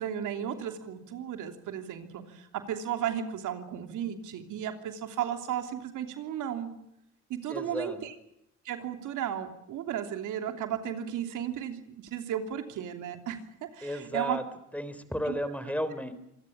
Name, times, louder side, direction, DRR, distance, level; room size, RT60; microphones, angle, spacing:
voice 1, 0.0-6.7 7.3-8.1 8.6-14.4 15.3-15.4, right 9 dB, 85° right, 7 dB, 3.1 m, -34 dB
voice 2, 7.5-8.0 13.8-14.4 14.7-16.1, equal, 5° left, 12 dB, 3.6 m, -33 dB
26.0 x 18.5 x 8.7 m, 0.80 s
cardioid pair, 90°, 30 cm